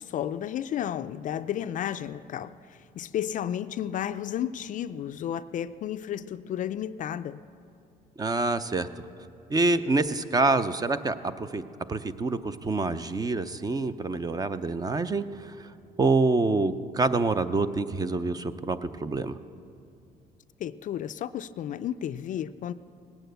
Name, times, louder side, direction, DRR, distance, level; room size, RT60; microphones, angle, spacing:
voice 1, 0.0-7.4 20.6-22.7, left 10 dB, 50° left, 13 dB, 0.4 m, -32 dB
voice 2, 8.2-8.9 9.5-11.6 11.9-15.7 16.0-19.4, right 3 dB, 20° right, 12 dB, 0.5 m, -26 dB
18.5 x 9.0 x 7.9 m, 2.5 s
cardioid pair, 110°, 17 cm